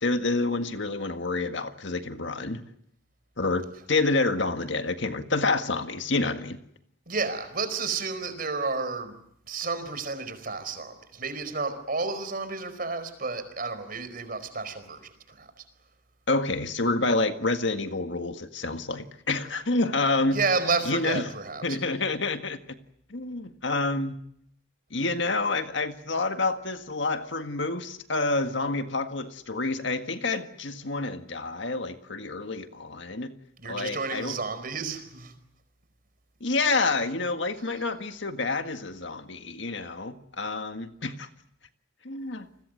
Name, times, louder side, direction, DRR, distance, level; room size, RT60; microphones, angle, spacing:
voice 1, 0.0-2.6 3.4-6.6 16.3-20.4 20.9-21.2 21.6-22.8 23.1-24.2 24.9-33.3 33.7-34.4 36.4-41.3 42.0-42.5, left 3 dB, 65° left, 8 dB, 1.7 m, -28 dB
voice 2, 7.1-9.1 9.5-15.5 20.3-21.8 33.6-35.4, right 4 dB, 45° right, 10 dB, 4.6 m, -31 dB
30.0 x 21.0 x 7.9 m, 0.71 s
head